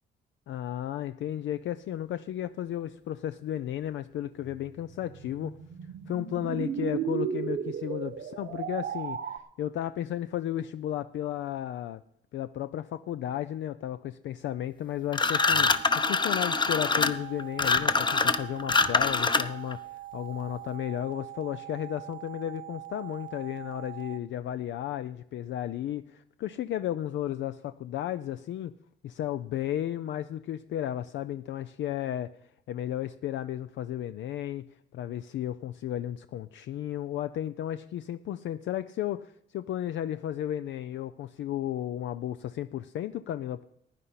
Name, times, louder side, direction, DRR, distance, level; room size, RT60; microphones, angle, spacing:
voice 1, 0.5-5.6 6.1-12.0 12.3-28.7 29.0-32.3 32.7-34.6 34.9-43.6, left 11 dB, 70° left, 12 dB, 0.5 m, -34 dB
sound 1, 4.4-9.4, right 8 dB, 60° right, 1.1 m, -34 dB
sound 2, 15.1-19.7, left 4 dB, 25° left, 0.8 m, -24 dB
sound 3, 15.3-24.2, right 16 dB, 40° right, 0.6 m, -43 dB
15.5 x 9.6 x 5.8 m, 0.78 s
cardioid pair, 90°, 20 cm